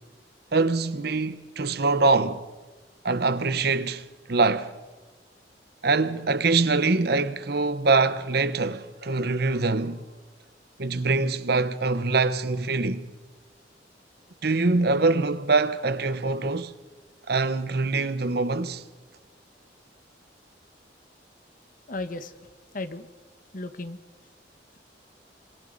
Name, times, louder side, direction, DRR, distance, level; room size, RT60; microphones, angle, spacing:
voice 1, 0.5-2.4 3.0-4.0 4.3-4.7 5.8-10.0 10.8-13.1 14.4-16.7 17.3-18.8, right 3 dB, 60° right, 0.9 m, -24 dB
voice 2, 21.9-22.3 22.7-23.1 23.5-24.0, left 2 dB, 50° left, 1.3 m, -34 dB
26.5 x 25.0 x 4.0 m
head